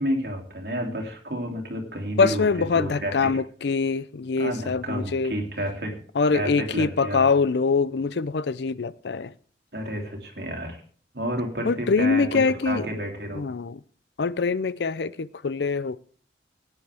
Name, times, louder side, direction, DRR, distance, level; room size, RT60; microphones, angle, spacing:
voice 1, 0.0-2.4 2.7-3.1 4.4-6.0 6.3-7.3 9.7-10.8 11.1-12.4 12.6-13.4, equal, 60° right, 2.9 m, -30 dB
voice 2, 2.2-5.4 6.1-9.3 11.6-12.9 13.3-13.8 14.2-16.0, left 4 dB, 70° left, 0.5 m, -24 dB
18.0 x 9.9 x 3.5 m
head